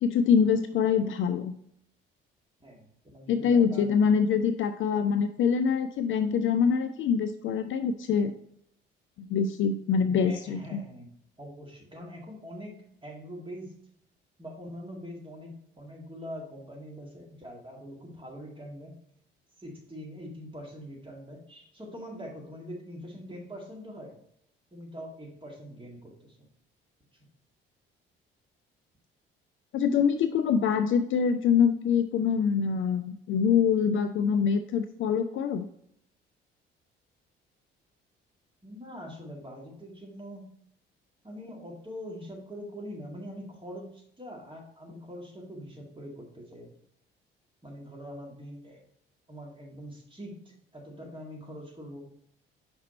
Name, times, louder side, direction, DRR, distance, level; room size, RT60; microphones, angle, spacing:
voice 1, 0.0-1.5 3.3-8.3 9.2-10.8 29.7-35.7, left 6 dB, 45° left, 9 dB, 0.4 m, -25 dB
voice 2, 2.6-3.9 10.1-11.1 11.4-12.8 13.0-13.7 14.4-19.0 19.6-24.1 24.7-26.5 38.6-40.5 41.2-46.7 47.6-48.8 49.3-52.0, equal, 15° right, -1 dB, 2.1 m, -43 dB
5.7 x 4.3 x 4.2 m, 0.70 s
figure-of-eight pair, 50°, 29 cm